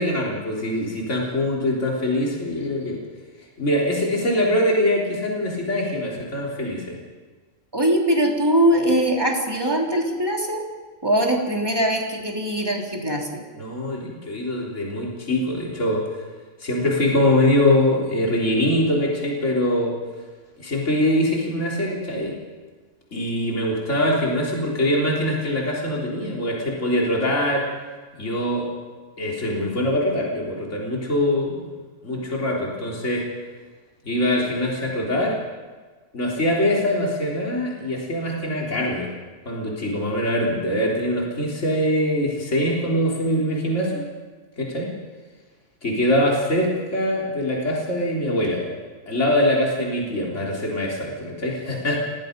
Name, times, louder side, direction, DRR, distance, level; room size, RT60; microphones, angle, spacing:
voice 1, 0.0-3.0 3.6-7.0 13.5-16.1 16.6-20.0 20.6-22.4 23.1-27.6 28.2-28.7 29.2-31.7 32.0-33.3 34.0-35.4 36.1-39.1 39.5-44.1 44.6-44.9 45.8-48.7 49.1-52.0, left 1 dB, 50° left, -3 dB, 4.1 m, -23 dB
voice 2, 7.7-10.6 11.0-13.4, right 1 dB, 15° right, 0 dB, 3.3 m, -21 dB
28.5 x 20.0 x 5.3 m, 1.4 s
omnidirectional pair, 1.6 m